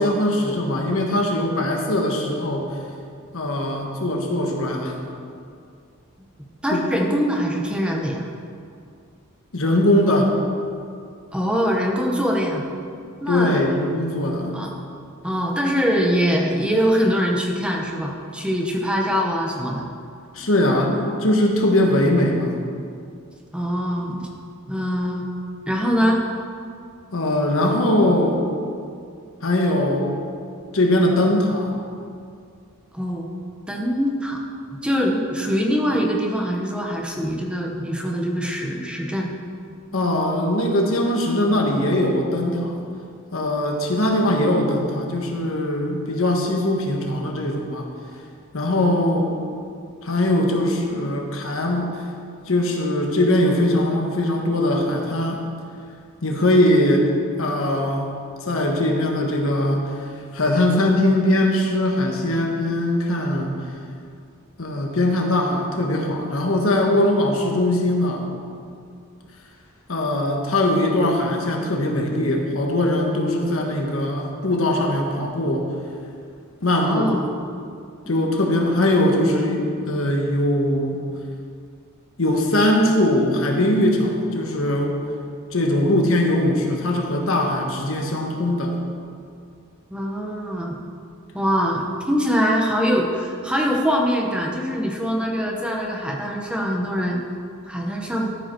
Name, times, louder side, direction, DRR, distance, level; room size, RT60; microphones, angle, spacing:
voice 1, 0.0-2.8 3.3-5.0 6.7-6.8 9.5-10.3 13.3-14.6 20.3-22.6 27.1-28.4 29.4-30.2 30.7-31.7 39.9-42.8 43.3-47.9 48.5-49.4 50.0-52.1 52.5-55.4 56.2-57.1 57.4-58.0 58.4-63.7 64.6-68.3 69.9-75.7 76.6-77.0 78.1-81.0 82.2-85.0 85.5-88.8, left 1 dB, 70° left, 1 dB, 1.3 m, -21 dB
voice 2, 6.6-8.3 11.3-12.7 13.2-13.6 14.5-14.7 15.2-19.9 23.5-24.3 24.7-25.3 25.7-26.2 32.9-33.3 33.7-34.4 34.8-39.3 76.8-77.2 78.0-78.5 89.9-90.8 91.3-97.2 97.7-98.3, equal, 5° right, 0 dB, 0.8 m, -23 dB
13.5 x 5.4 x 4.5 m, 2.4 s
head